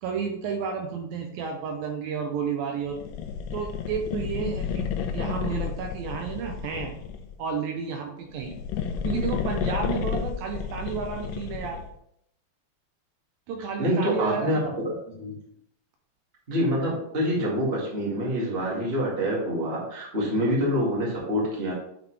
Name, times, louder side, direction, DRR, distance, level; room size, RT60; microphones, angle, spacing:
voice 1, 0.0-3.0 3.5-6.9 7.4-8.6 9.0-11.8 13.5-14.6, right 6 dB, 80° right, 3 dB, 2.2 m, -31 dB
sound 1, 2.9-7.4 8.3-11.9, left 7 dB, 80° left, 2.1 m, -31 dB
voice 2, 13.8-14.6 14.8-15.3 16.5-21.7, equal, 25° right, -5 dB, 1.3 m, -26 dB
8.9 x 4.0 x 3.3 m, 0.73 s
omnidirectional pair, 4.5 m